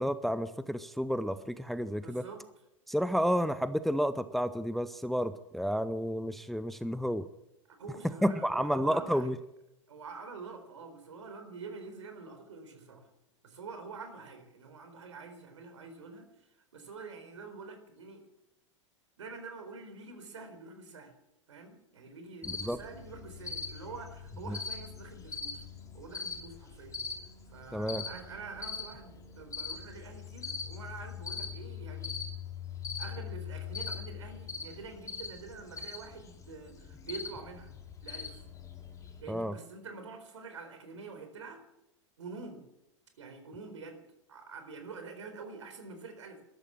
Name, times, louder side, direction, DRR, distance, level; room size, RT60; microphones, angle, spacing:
voice 1, 0.0-2.2 2.9-7.3 8.0-9.4 22.4-22.8 24.5-24.6 27.7-28.1 39.3-39.6, equal, ahead, 14 dB, 0.6 m, -31 dB
voice 2, 2.0-2.4 7.8-9.3 9.9-13.1 13.4-16.3 16.7-18.2 19.2-21.1 21.5-25.6 25.9-27.0 27.5-32.1 33.0-37.7 38.0-38.4 39.2-41.6 42.2-42.6 43.2-44.0 44.3-46.4, right 4 dB, 70° right, 7 dB, 4.2 m, -46 dB
Cricket, 22.4-39.2, left 5 dB, 20° left, 2.8 m, -42 dB
14.0 x 13.0 x 7.5 m, 0.88 s
figure-of-eight pair, 95°, 16 cm